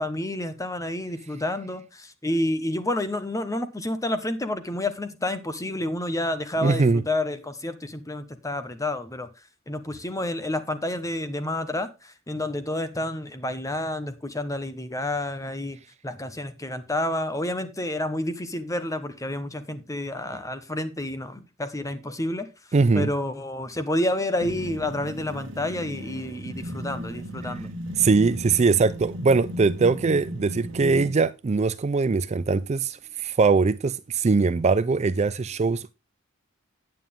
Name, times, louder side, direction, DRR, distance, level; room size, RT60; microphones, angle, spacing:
voice 1, 0.0-9.3 9.7-15.8 16.0-22.5 22.9-27.7, left 1 dB, 15° left, 1.1 m, -29 dB
voice 2, 6.6-7.0 22.7-23.1 28.0-35.9, right 4 dB, 35° right, 0.4 m, -21 dB
sound 1, 24.4-31.2, equal, 65° right, 1.6 m, -36 dB
9.2 x 9.1 x 3.6 m
head